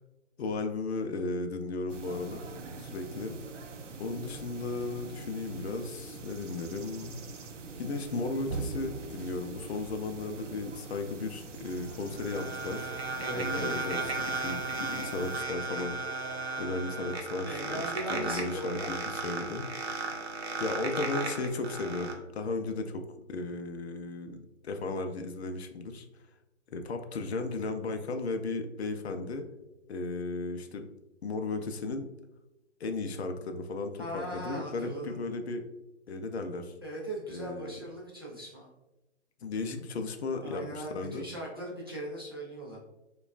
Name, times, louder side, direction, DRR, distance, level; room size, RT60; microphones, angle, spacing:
voice 1, 0.4-2.4 2.8-3.4 4.0-7.2 7.8-12.9 13.4-16.2 16.6-17.8 18.1-19.7 20.6-26.1 26.7-29.5 29.9-30.8 31.2-32.1 32.8-35.6 36.1-36.7 37.3-37.8 39.4-41.2, left 3 dB, 60° left, 6 dB, 0.5 m, -35 dB
sound 1, 1.9-15.4, right 4 dB, 90° right, 0.6 m, -43 dB
sound 2, 11.7-22.1, right 3 dB, 60° right, 0.7 m, -35 dB
voice 2, 13.2-13.7 17.4-18.9 34.0-35.2 36.8-38.7 40.4-42.8, right 1 dB, 20° right, -6 dB, 0.3 m, -39 dB
4.7 x 2.3 x 2.4 m, 0.97 s
hypercardioid pair, 145°, 36 cm